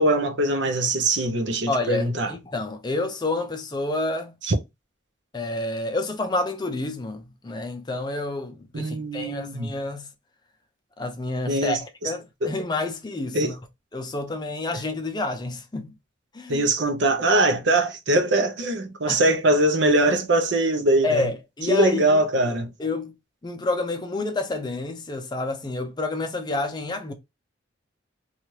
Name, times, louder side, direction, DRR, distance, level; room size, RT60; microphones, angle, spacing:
voice 1, 0.0-2.3 4.5-4.6 8.7-9.7 11.5-12.1 12.4-12.5 13.3-13.5 16.5-21.3 21.7-22.7, right 1 dB, 60° right, 0.6 m, -22 dB
voice 2, 1.7-4.3 5.3-10.1 11.0-13.6 13.9-15.9 16.3-16.7 19.1-19.2 21.0-22.2 22.8-23.1 23.4-27.1, left 2 dB, 20° left, 0.4 m, -29 dB
2.8 x 2.4 x 3.0 m
head